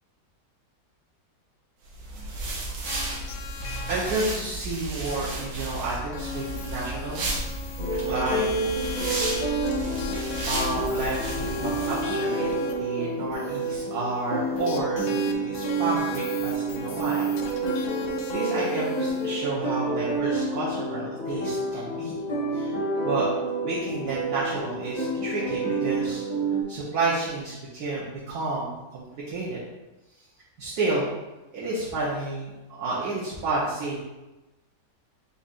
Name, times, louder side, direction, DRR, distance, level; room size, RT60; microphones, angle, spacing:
sound 1, 1.9-12.1, right 2 dB, 90° right, 1.6 m, -33 dB
sound 2, 2.8-4.2 5.0-5.2 5.4-5.5 6.1-19.4, left 7 dB, 75° left, 1.1 m, -39 dB
voice 1, 3.9-7.6 7.8-9.3 10.1-17.3 18.3-22.2 22.5-22.8 23.0-23.3 23.6-26.3 26.7-29.6 30.6-31.1 31.5-34.0, right 2 dB, 65° right, -7 dB, 1.4 m, -31 dB
sound 3, 7.8-26.6, right 2 dB, 25° left, 1.3 m, -29 dB
5.0 x 4.1 x 2.5 m, 1.0 s
omnidirectional pair, 1.9 m